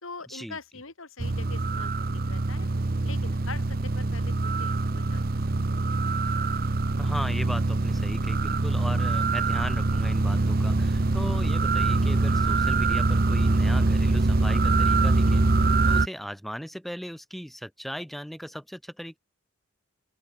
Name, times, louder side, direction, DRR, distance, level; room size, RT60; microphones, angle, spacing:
voice 1, 0.0-1.9 2.3-2.7 3.0-4.3 4.6-6.0, left 4 dB, 80° left, 3.6 m, -43 dB
sound 1, 1.2-16.1, right 3 dB, 45° right, 0.8 m, -24 dB
voice 2, 7.0-15.4 15.9-19.2, equal, ahead, 2.4 m, -37 dB
open air
head